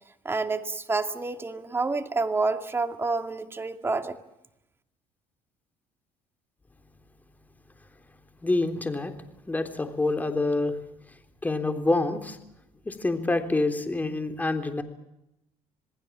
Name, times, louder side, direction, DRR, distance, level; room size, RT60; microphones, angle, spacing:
voice 1, 0.2-4.2, right 3 dB, 20° right, 7 dB, 2.3 m, -28 dB
voice 2, 8.4-9.1 9.5-10.8 11.4-12.4 12.9-14.8, left 2 dB, 15° left, 7 dB, 3.5 m, -26 dB
27.5 x 19.5 x 7.4 m, 0.84 s
cardioid pair, 100°, 12 cm